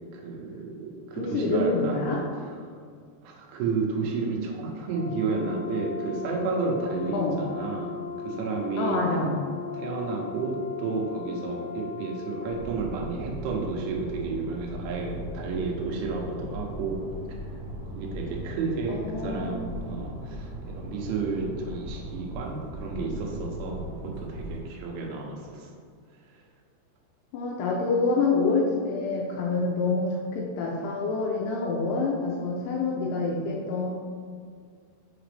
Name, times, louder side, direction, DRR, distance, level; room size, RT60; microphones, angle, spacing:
voice 1, 0.1-2.1 2.6-2.7 3.2-9.0 9.7-17.0 18.0-25.7, right 4 dB, 90° right, 0 dB, 3.4 m, -31 dB
voice 2, 1.1-2.2 7.1-7.4 8.8-9.4 18.9-19.7 27.3-33.9, left 3 dB, 80° left, -2 dB, 2.5 m, -27 dB
Brass instrument, 4.9-12.6, left 7 dB, 55° left, 2.4 m, -37 dB
sound 1, 12.5-24.6, equal, 70° right, 1.6 m, -38 dB
6.8 x 5.0 x 3.3 m, 2.1 s
omnidirectional pair, 5.4 m